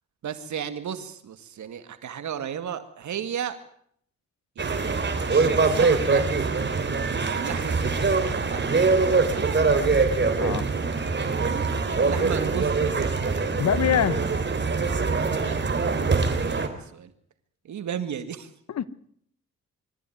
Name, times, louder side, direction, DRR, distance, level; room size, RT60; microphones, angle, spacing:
voice 1, 0.2-3.6 4.6-6.3 7.1-9.6 11.5-13.2 15.3-17.1 17.6-18.5, right 8 dB, 75° right, 2.1 m, -35 dB
sound 1, 4.6-16.7, right 4 dB, 40° right, 3.6 m, -23 dB
voice 2, 10.4-10.7 13.6-14.2 18.7-18.9, left 9 dB, 65° left, 1.2 m, -24 dB
24.0 x 14.5 x 9.4 m
cardioid pair, 85°, 29 cm